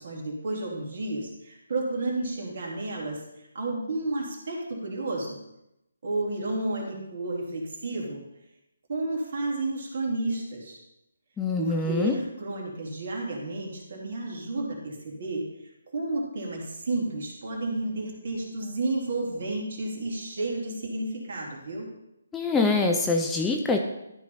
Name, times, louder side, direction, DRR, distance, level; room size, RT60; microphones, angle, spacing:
voice 1, 0.0-5.4 6.0-8.2 8.9-10.8 11.6-15.4 15.9-21.9, right 2 dB, 55° right, -2 dB, 2.9 m, -31 dB
voice 2, 11.4-12.2 22.3-23.8, left 3 dB, 10° left, 2 dB, 0.6 m, -24 dB
12.5 x 4.8 x 4.3 m, 0.86 s
figure-of-eight pair, 150°, 0 cm